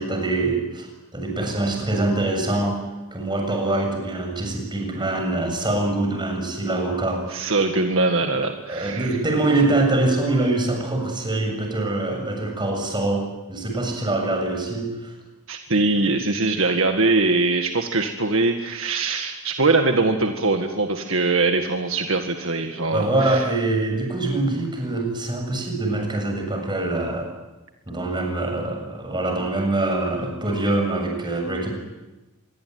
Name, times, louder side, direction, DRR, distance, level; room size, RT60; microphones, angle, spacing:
voice 1, 0.0-2.9 3.1-7.5 8.4-15.1 22.9-27.3 27.9-31.7, right 2 dB, 20° right, 3 dB, 7.1 m, -24 dB
voice 2, 7.3-9.2 15.5-23.5, right 3 dB, 60° right, 5 dB, 1.9 m, -22 dB
26.0 x 22.0 x 9.5 m, 1.1 s
head